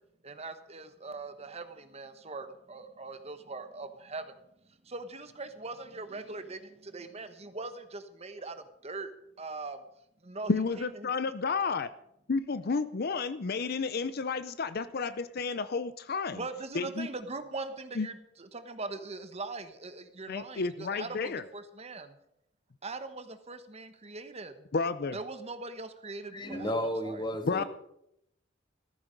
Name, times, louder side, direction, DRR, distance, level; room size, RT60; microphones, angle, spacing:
voice 1, 0.2-4.3 4.8-9.1 9.4-9.8 10.2-11.1 16.3-22.2 22.8-24.7 25.1-27.2, right 3 dB, 35° right, 9 dB, 1.2 m, -41 dB
voice 2, 10.5-11.9 12.3-16.4 16.7-17.1 17.9-18.1 20.3-21.4 24.7-25.2 27.4-27.6, left 4 dB, 55° left, 14 dB, 0.6 m, -31 dB
voice 3, 26.3-27.6, equal, 25° left, 7 dB, 1.7 m, -33 dB
14.5 x 14.0 x 5.2 m, 0.77 s
head